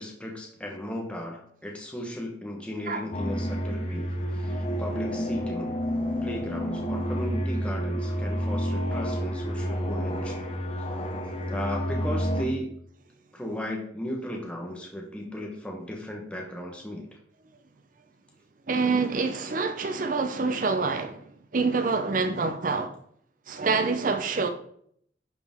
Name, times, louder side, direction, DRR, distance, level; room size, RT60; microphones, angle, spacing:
voice 1, 0.0-5.8 6.2-10.5 11.5-12.8 13.3-17.2, left 1 dB, 5° left, 1.1 m, -36 dB
sound 1, 3.1-12.4, equal, 35° left, 1.0 m, -29 dB
voice 2, 18.7-21.2 21.5-22.9 23.5-24.5, right 4 dB, 45° right, 0.6 m, -26 dB
11.0 x 4.9 x 3.6 m
head